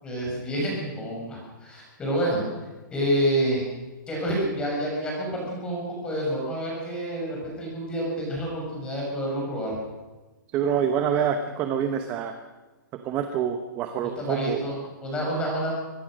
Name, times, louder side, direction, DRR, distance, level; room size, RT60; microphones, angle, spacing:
voice 1, 0.0-2.4 2.9-3.7 4.1-9.8 14.0-15.7, right 1 dB, 10° left, -2 dB, 6.5 m, -28 dB
voice 2, 10.5-12.3 13.0-14.6, right 8 dB, 15° right, 7 dB, 0.9 m, -26 dB
24.0 x 19.5 x 6.4 m, 1.2 s
hypercardioid pair, 175°, 11 cm